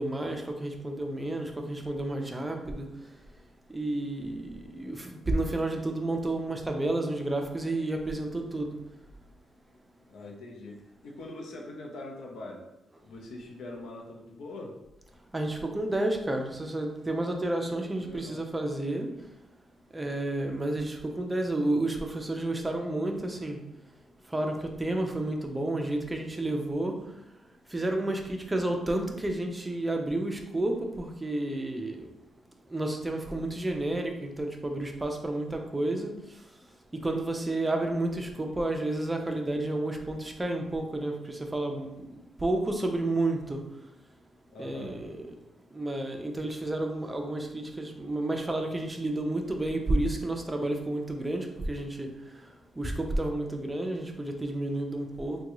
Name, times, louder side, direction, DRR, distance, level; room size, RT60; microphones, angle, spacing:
voice 1, 0.0-2.9 3.7-8.7 15.3-19.1 19.9-23.6 24.3-26.9 27.7-32.1 32.7-36.1 36.9-41.9 42.4-43.6 44.6-45.2 45.7-52.1 52.8-55.4, right 1 dB, 15° right, 3 dB, 0.4 m, -31 dB
voice 2, 10.1-12.6 13.0-14.8 17.6-18.4 44.5-45.0, left 2 dB, 80° left, 0 dB, 0.7 m, -43 dB
3.5 x 2.2 x 3.0 m, 0.88 s
cardioid pair, 125°, 0 cm